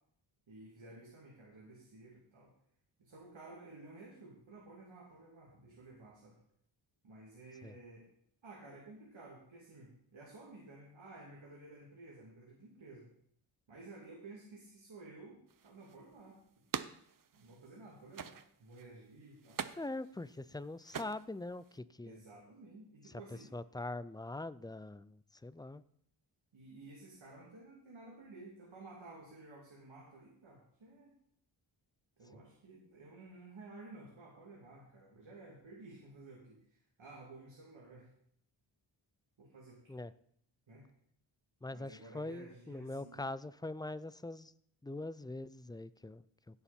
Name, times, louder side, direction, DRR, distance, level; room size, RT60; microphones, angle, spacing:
voice 1, 0.5-2.5 3.0-6.4 7.0-8.1 8.4-13.1 13.7-16.4 17.3-18.3 18.6-19.6 22.0-23.5 26.5-31.1 32.2-38.1 39.4-40.0 40.7-40.8 41.7-43.3, right 2 dB, 70° right, -3 dB, 3.0 m, -54 dB
sound 1, 15.5-17.8 18.1-18.9 19.4-21.8, right 7 dB, 45° right, 0.7 m, -45 dB
voice 2, 19.8-22.2 23.1-25.8 32.3-32.4 39.9-40.1 41.6-44.5 44.8-46.6, left 2 dB, 10° left, 16 dB, 0.4 m, -43 dB
16.0 x 7.2 x 4.4 m, 0.67 s
wide cardioid pair, 80°, 48 cm